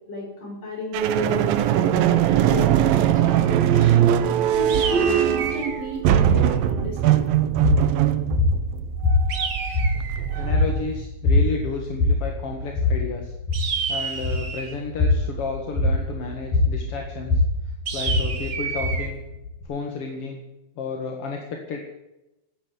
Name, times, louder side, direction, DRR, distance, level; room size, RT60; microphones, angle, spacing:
voice 1, 0.1-1.7 1.9-7.3, equal, 25° left, -1 dB, 6.4 m, -32 dB
sound 1, 0.9-11.0, right 11 dB, 75° right, 2.5 m, -21 dB
sound 2, 4.7-5.8 9.3-10.3 13.5-14.8 17.9-19.1, right 5 dB, 50° right, 1.4 m, -30 dB
sound 3, 7.6-19.6, left 2 dB, 65° left, 5.6 m, -23 dB
voice 2, 10.3-13.3 13.9-17.4 17.9-19.2 19.7-20.4 20.8-21.8, left 4 dB, 45° left, 2 dB, 2.2 m, -32 dB
15.0 x 10.0 x 9.5 m, 0.94 s
omnidirectional pair, 4.5 m